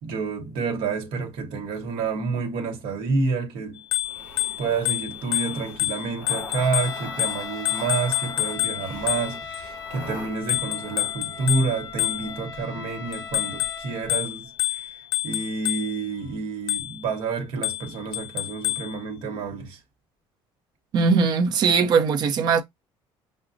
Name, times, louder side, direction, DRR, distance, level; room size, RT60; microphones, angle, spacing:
voice 1, 0.0-3.8 4.6-15.0 15.2-19.8, right 4 dB, 60° right, 1.0 m, -29 dB
Bicycle bell, 3.8-9.6 10.5-12.6 13.1-16.1 16.7-17.1 17.6-19.0, left 14 dB, 65° left, 0.4 m, -28 dB
sound 1, 4.0-12.5, left 2 dB, 20° left, 2.9 m, -43 dB
Trumpet, 6.6-14.2, left 5 dB, 45° left, 0.7 m, -39 dB
voice 2, 20.9-22.6, right 5 dB, 45° right, 0.6 m, -20 dB
5.9 x 2.1 x 2.5 m
cardioid pair, 155°, 10 cm